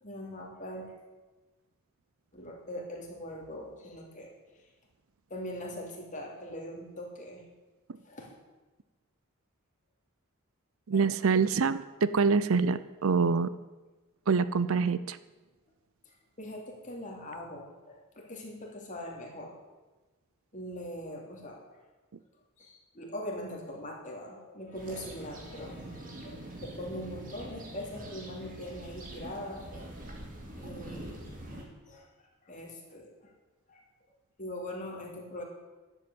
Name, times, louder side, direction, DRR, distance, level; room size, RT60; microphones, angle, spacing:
voice 1, 0.0-0.9 2.3-4.3 5.3-7.4 8.0-8.3 10.9-11.2 16.4-19.5 20.5-21.8 22.6-29.8 30.5-32.1 32.4-33.3 33.7-33.8 34.4-35.4, left 1 dB, 35° left, -1 dB, 3.0 m, -42 dB
voice 2, 10.9-13.5 14.3-15.2, right 5 dB, 65° right, 15 dB, 0.5 m, -25 dB
sound 1, 24.7-31.6, right 1 dB, 40° right, 2.6 m, -44 dB
11.5 x 8.0 x 8.7 m, 1.2 s
head